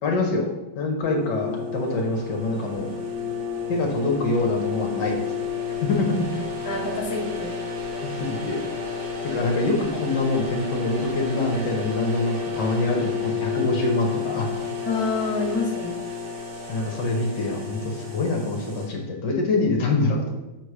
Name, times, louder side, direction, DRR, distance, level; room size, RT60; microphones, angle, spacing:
voice 1, 0.0-2.9 3.7-5.3 5.7-6.4 8.2-8.6 9.2-14.5 16.7-20.3, left 2 dB, 65° left, 1 dB, 1.3 m, -25 dB
sound 1, 1.0-18.9, left 6 dB, 45° right, 1.5 m, -31 dB
voice 2, 6.6-7.5 14.9-16.0, left 3 dB, 15° left, -3 dB, 0.6 m, -27 dB
6.6 x 3.0 x 4.8 m, 1.1 s
omnidirectional pair, 2.2 m